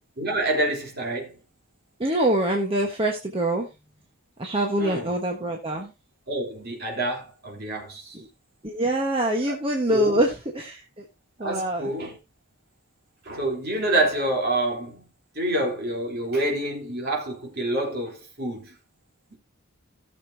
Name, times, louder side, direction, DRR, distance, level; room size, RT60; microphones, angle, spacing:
voice 1, 0.2-1.4 4.8-5.1 6.3-8.2 9.5-9.6 9.9-10.2 11.4-12.2 13.2-15.1 15.4-18.8, right 1 dB, 50° right, 3.4 m, -27 dB
voice 2, 2.0-3.7 4.4-5.9 8.1-8.3 8.6-11.0 11.4-11.9, right 1 dB, 25° right, 1.2 m, -25 dB
16.5 x 6.8 x 2.7 m
head